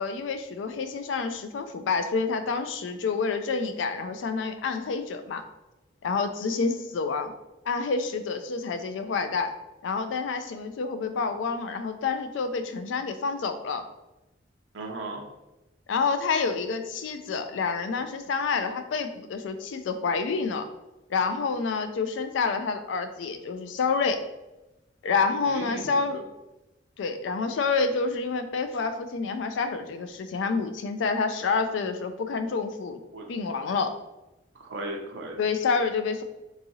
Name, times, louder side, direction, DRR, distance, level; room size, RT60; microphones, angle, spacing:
voice 1, 0.0-5.5 6.0-7.3 7.7-9.5 9.8-13.8 15.9-20.7 21.1-24.2 25.0-26.2 27.0-33.0 33.3-33.9 35.4-36.2, left 4 dB, 80° left, 9 dB, 0.4 m, -28 dB
voice 2, 14.7-15.2 25.4-26.0 33.1-33.2 34.5-35.4, right 2 dB, 90° right, 0 dB, 0.7 m, -36 dB
3.5 x 2.9 x 2.7 m, 0.98 s
head